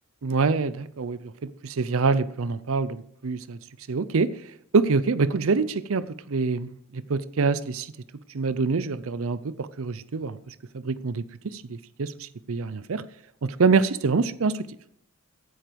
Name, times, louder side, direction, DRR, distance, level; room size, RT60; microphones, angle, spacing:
voice 1, 0.2-3.6 3.9-7.9 8.3-13.0 13.4-14.7, right 4 dB, 65° right, 0.6 m, -26 dB
15.0 x 9.1 x 5.1 m
head